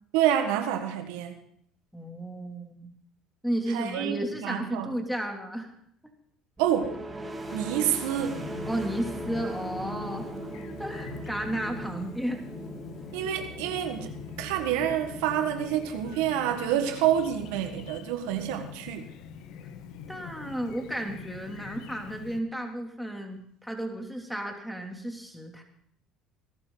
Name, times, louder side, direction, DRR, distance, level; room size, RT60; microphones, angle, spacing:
voice 1, 0.1-1.3 3.7-4.9 6.6-7.0 7.5-8.5 13.1-19.1, right 10 dB, 85° right, 6 dB, 1.5 m, -28 dB
voice 2, 1.9-2.9 3.4-5.7 8.7-10.3 10.8-12.4 20.1-25.6, right 1 dB, ahead, 2 dB, 3.0 m, -33 dB
sound 1, 6.6-18.1, right 2 dB, 15° right, 2.9 m, -40 dB
Chirp tweet, 8.2-22.4, left 8 dB, 70° left, 1.1 m, -44 dB
19.0 x 11.5 x 4.0 m, 0.66 s
supercardioid pair, 85°, 0 cm